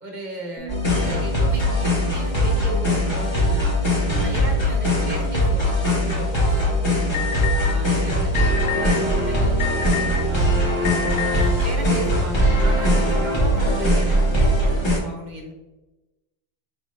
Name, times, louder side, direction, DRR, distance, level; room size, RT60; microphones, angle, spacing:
voice 1, 0.0-3.8 4.1-7.1 7.5-10.6 11.1-15.5, right 1 dB, 45° right, 0 dB, 1.1 m, -35 dB
Bass guitar, 0.6-6.8, right 9 dB, 5° right, 1.3 m, -42 dB
sound 1, 0.7-15.0, equal, 25° left, 1.0 m, -20 dB
Alarm, 7.1-7.7 8.4-8.9 9.6-10.3 10.8-11.4, left 7 dB, 80° left, 0.9 m, -28 dB
4.8 x 3.7 x 2.4 m, 1.0 s
omnidirectional pair, 1.1 m